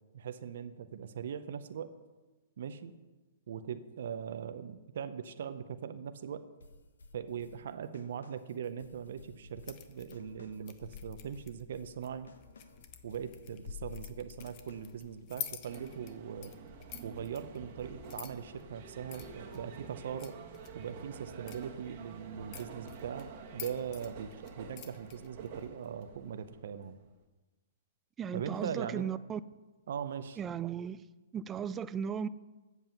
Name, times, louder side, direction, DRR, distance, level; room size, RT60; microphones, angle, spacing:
voice 1, 0.1-1.9 2.6-2.9 3.5-6.5 7.1-12.3 13.0-16.5 17.0-20.4 20.7-27.0 28.3-29.1 29.9-30.4, right 8 dB, 65° right, 0.6 m, -40 dB
sound 1, 6.6-15.1, left 2 dB, 90° left, 1.1 m, -57 dB
sound 2, 9.5-25.7, left 10 dB, 35° left, 0.8 m, -50 dB
sound 3, 15.6-27.0, right 5 dB, 45° right, 1.3 m, -49 dB
voice 2, 28.2-29.4 30.4-31.0 31.3-32.3, right 8 dB, 20° right, 0.3 m, -36 dB
7.9 x 7.2 x 6.9 m
hypercardioid pair, 140°, 0 cm